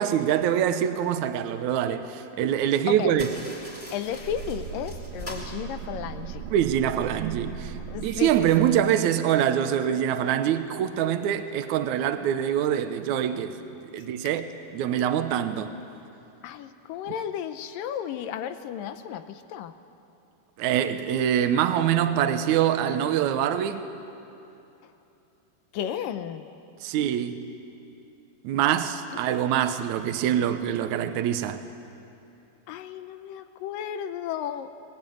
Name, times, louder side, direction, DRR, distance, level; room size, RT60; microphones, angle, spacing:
voice 1, 0.0-3.3 6.5-7.7 8.0-13.6 13.9-14.5 14.7-15.7 20.6-23.8 26.8-27.4 28.4-31.6, right 10 dB, 85° right, 1.7 m, -24 dB
voice 2, 2.9-3.2 3.9-6.4 7.9-8.7 16.4-19.7 24.8-24.9 25.7-26.5 32.7-34.7, left 9 dB, 75° left, 2.1 m, -34 dB
sound 1, 3.1-6.5, left 1 dB, 10° left, 4.5 m, -43 dB
sound 2, 4.1-9.0, right 7 dB, 70° right, 2.7 m, -38 dB
22.5 x 21.0 x 9.3 m
omnidirectional pair, 4.6 m